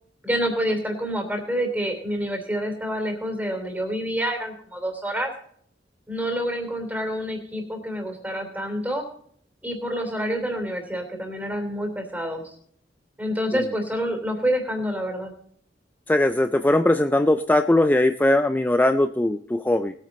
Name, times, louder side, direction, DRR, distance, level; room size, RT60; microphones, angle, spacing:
voice 1, 0.2-5.3 6.1-9.0 9.6-12.5 13.2-15.3, equal, 10° right, 3 dB, 3.1 m, -27 dB
voice 2, 16.1-19.9, left 1 dB, 10° left, 9 dB, 0.4 m, -20 dB
20.0 x 9.1 x 4.2 m, 0.63 s
head